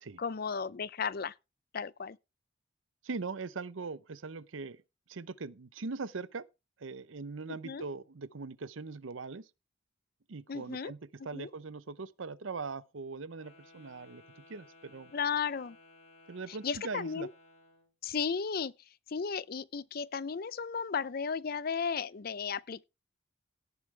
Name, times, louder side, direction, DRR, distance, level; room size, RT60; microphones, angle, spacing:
voice 1, 0.2-1.3 1.7-2.2 7.6-7.8 10.5-10.9 11.3-11.5 15.1-15.8 16.5-17.3 18.0-18.7 19.1-22.8, left 6 dB, 50° left, 0.5 m, -34 dB
voice 2, 3.0-4.8 5.1-6.5 6.8-9.5 10.3-15.1 16.3-17.3, right 4 dB, 85° right, 0.7 m, -41 dB
Wind instrument woodwind instrument, 13.3-17.9, left 2 dB, 35° left, 4.0 m, -59 dB
17.5 x 7.1 x 3.3 m
head